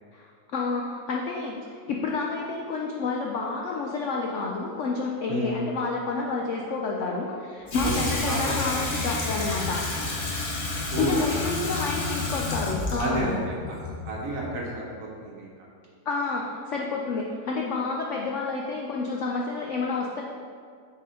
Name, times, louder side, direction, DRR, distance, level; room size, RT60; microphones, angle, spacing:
voice 1, 0.1-9.8 10.8-13.3 16.1-20.2, left 4 dB, 75° left, -1 dB, 0.7 m, -29 dB
voice 2, 5.3-5.6 7.8-8.0 8.3-8.8 10.9-11.8 13.0-13.4 13.7-13.8 14.0-15.5, right 2 dB, 55° right, -3 dB, 1.2 m, -31 dB
Water tap faucet / Sink (filling or washing), 7.7-14.7, left 3 dB, 45° left, 1.0 m, -30 dB
7.3 x 4.2 x 3.8 m, 2.1 s
omnidirectional pair, 1.9 m